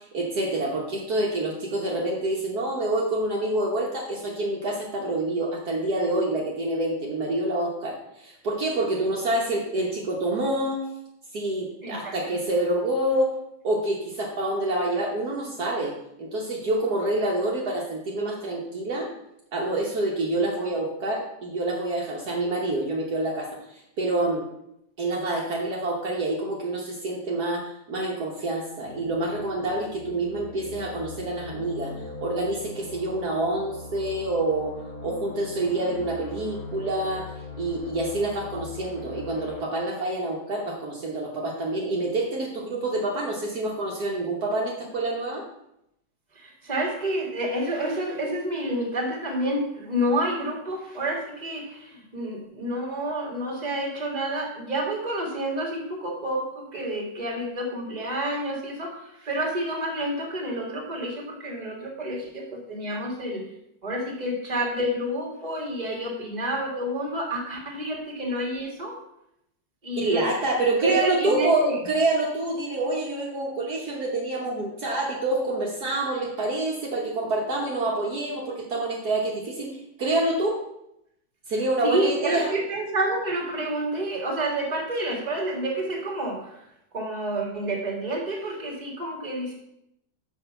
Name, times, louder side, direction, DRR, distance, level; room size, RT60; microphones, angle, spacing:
voice 1, 0.0-10.9 11.3-13.4 13.6-19.1 19.5-24.4 25.0-31.9 32.2-34.8 35.0-37.3 37.6-45.4 70.0-80.6 81.5-82.6, right 2 dB, 60° right, -2 dB, 1.6 m, -27 dB
voice 2, 11.8-12.1 46.4-63.4 63.8-68.9 69.8-70.3 70.6-71.8 81.8-86.7 86.9-89.5, right 1 dB, 25° right, 0 dB, 1.9 m, -29 dB
sound 1, 28.8-39.6, left 3 dB, 55° left, 1.9 m, -40 dB
6.0 x 5.6 x 6.7 m, 0.80 s
omnidirectional pair, 2.0 m